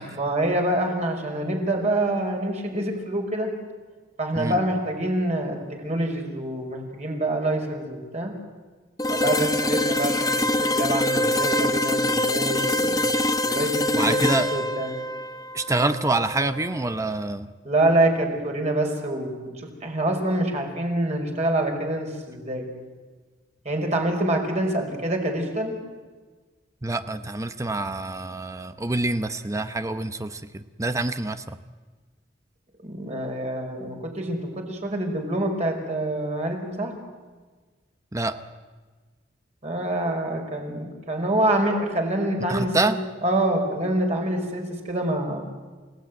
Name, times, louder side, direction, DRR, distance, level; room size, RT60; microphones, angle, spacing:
voice 1, 0.1-3.5 4.2-5.6 5.8-8.3 9.1-13.1 13.4-15.0 17.6-22.7 23.6-25.7 32.8-36.9 39.6-45.4, right 1 dB, 40° right, 2 dB, 4.9 m, -26 dB
sound 1, 9.0-16.8, left 1 dB, 20° left, 1.0 m, -24 dB
voice 2, 13.9-14.5 15.5-17.5 26.8-31.6 38.1-38.3 42.5-43.0, right 2 dB, 15° right, 10 dB, 0.8 m, -26 dB
29.0 x 16.5 x 9.4 m, 1.4 s
head